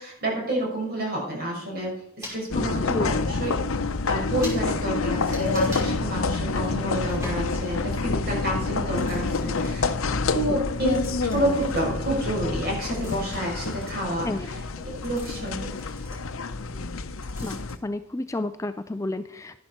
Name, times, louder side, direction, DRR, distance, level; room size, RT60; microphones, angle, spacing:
voice 1, 0.0-3.5 4.1-9.9 10.3-11.0 11.2-14.3 14.8-15.8, right 1 dB, 45° right, -2 dB, 6.0 m, -29 dB
sound 1, 2.2-2.4 3.3-3.4 3.7-3.8 4.0-4.2 4.4-4.6 5.2-5.9 6.9-7.4 8.9-9.9 10.9-12.3 12.6-16.9 17.2-17.8, equal, 15° right, 5.3 m, -43 dB
sound 2, 2.5-17.8, left 3 dB, 75° left, 0.7 m, -28 dB
voice 2, 17.4-19.6, left 2 dB, 15° left, 11 dB, 0.3 m, -31 dB
12.5 x 11.0 x 4.4 m, 0.78 s
head